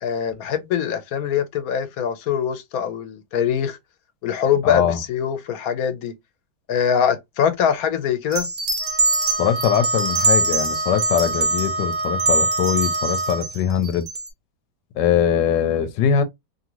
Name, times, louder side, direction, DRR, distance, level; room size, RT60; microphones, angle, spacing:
voice 1, 0.0-3.8 4.2-6.1 6.7-8.5, left 8 dB, 65° left, 1.0 m, -23 dB
voice 2, 4.6-5.0 9.4-14.1 14.9-16.2, left 8 dB, 85° left, 1.2 m, -21 dB
sound 1, 8.3-14.3, right 3 dB, 60° right, 0.4 m, -24 dB
Wind instrument woodwind instrument, 8.8-13.5, right 2 dB, 20° right, 0.8 m, -27 dB
2.7 x 2.7 x 2.9 m
omnidirectional pair, 1.8 m